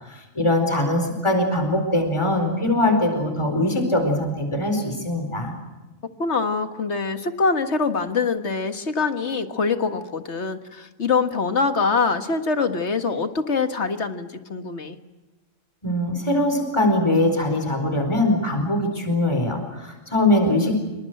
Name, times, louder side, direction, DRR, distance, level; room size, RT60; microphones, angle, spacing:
voice 1, 0.1-5.5 15.8-20.8, left 1 dB, 20° left, 5 dB, 4.5 m, -22 dB
voice 2, 6.2-15.0, left 4 dB, 55° left, 8 dB, 1.9 m, -24 dB
26.5 x 25.0 x 7.9 m, 1.1 s
omnidirectional pair, 1.4 m